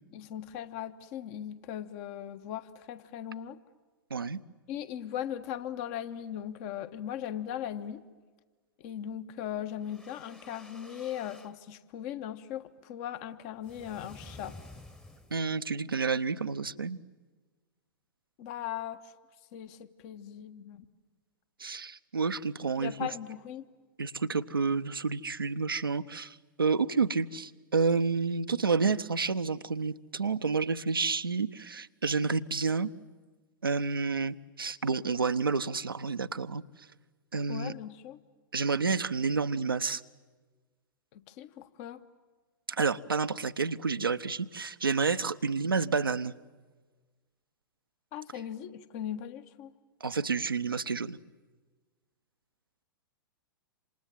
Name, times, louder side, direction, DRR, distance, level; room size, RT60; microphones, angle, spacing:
voice 1, 0.1-3.6 4.7-8.0 8.8-14.6 18.4-19.1 19.5-20.8 22.8-23.6 37.5-38.2 41.1-42.0 48.1-49.7, left 10 dB, 40° left, 11 dB, 1.5 m, -39 dB
sound 1, 9.7-11.6 13.6-15.5, left 1 dB, 5° left, 1.3 m, -51 dB
voice 2, 15.3-17.0 21.6-23.1 24.0-32.9 33.6-36.6 37.3-37.7 38.5-40.0 42.7-46.3 50.0-51.2, right 4 dB, 80° right, 11 dB, 0.9 m, -29 dB
28.0 x 27.0 x 7.5 m, 1.3 s
figure-of-eight pair, 105°, 12 cm